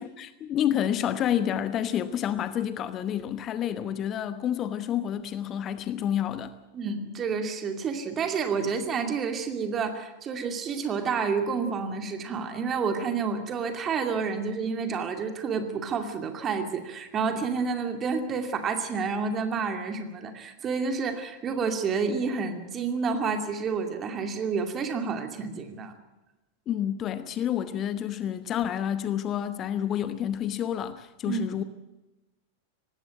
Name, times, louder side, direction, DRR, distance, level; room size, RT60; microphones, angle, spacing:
voice 1, 0.0-6.5 26.7-31.6, left 10 dB, 30° left, 0.9 m, -29 dB
voice 2, 6.7-26.0 31.3-31.4, right 5 dB, 25° right, 2.5 m, -29 dB
19.0 x 16.0 x 8.9 m
figure-of-eight pair, 90°, 0 cm